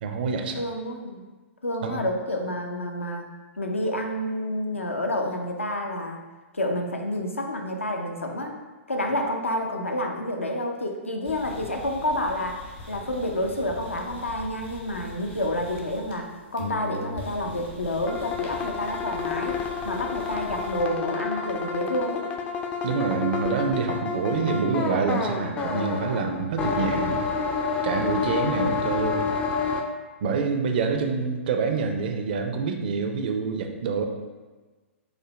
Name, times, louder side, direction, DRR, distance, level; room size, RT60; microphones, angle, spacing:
voice 1, 0.0-0.6 1.8-2.1 22.8-27.2 27.8-29.3 30.2-34.1, right 5 dB, 45° right, 4 dB, 0.4 m, -26 dB
voice 2, 0.5-1.2 1.6-3.3 3.6-6.2 6.5-8.6 8.9-12.6 12.9-22.3, left 1 dB, 80° left, 3 dB, 0.5 m, -29 dB
sound 1, 11.2-16.3 16.6-20.8, left 2 dB, 45° left, 0.9 m, -41 dB
sound 2, 18.0-29.8, left 5 dB, 20° left, 0.3 m, -29 dB
4.9 x 2.1 x 3.1 m, 1.3 s
figure-of-eight pair, 110°, 7 cm